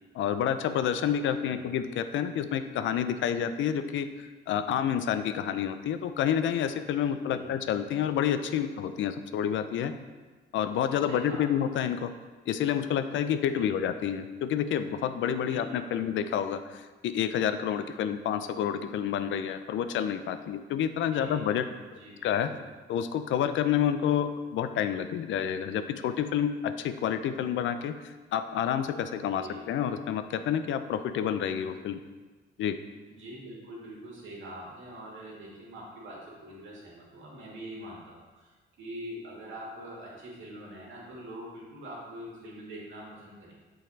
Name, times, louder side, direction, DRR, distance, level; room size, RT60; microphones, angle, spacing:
voice 1, 0.2-9.9 10.5-12.1 12.5-21.7 22.2-22.5 22.9-32.0 32.6-32.8, left 9 dB, 75° left, 10 dB, 0.5 m, -29 dB
voice 2, 1.2-1.6 7.0-7.5 11.0-11.5 13.5-13.8 15.5-16.2 21.1-21.4 22.0-22.6 29.3-29.7 33.1-43.5, right 1 dB, 75° right, -4 dB, 2.0 m, -44 dB
6.6 x 4.1 x 4.1 m, 1.3 s
cardioid pair, 90°, 20 cm